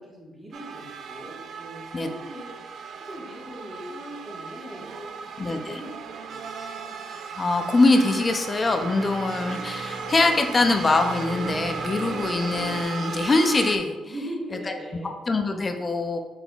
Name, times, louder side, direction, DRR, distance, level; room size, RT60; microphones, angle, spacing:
voice 1, 0.0-2.5 3.0-5.9 6.3-6.5 14.0-15.1, right 1 dB, 20° right, -3 dB, 1.4 m, -40 dB
sound 1, 0.5-13.8, right 5 dB, 65° right, 0.3 m, -37 dB
voice 2, 5.4-5.7 7.4-14.0 15.3-16.2, left 2 dB, 30° left, 5 dB, 0.4 m, -23 dB
sound 2, 7.5-12.8, right 3 dB, 35° right, 0.6 m, -38 dB
5.8 x 3.6 x 2.3 m, 1.2 s
cardioid pair, 90°, 0 cm